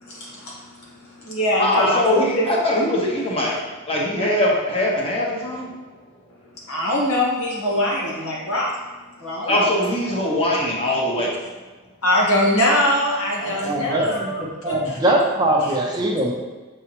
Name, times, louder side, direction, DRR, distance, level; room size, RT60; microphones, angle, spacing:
voice 1, 0.0-0.6 1.2-2.5 6.7-8.7 9.2-9.5 12.0-15.0, left 1 dB, 70° left, -4 dB, 1.7 m, -22 dB
voice 2, 1.6-3.6 3.9-5.7 9.5-11.3 13.4-13.8, left 1 dB, 25° left, -4 dB, 1.2 m, -22 dB
voice 3, 13.4-14.3 14.6-16.3, right 1 dB, 20° right, -2 dB, 0.8 m, -21 dB
7.0 x 4.6 x 3.0 m, 1.3 s
head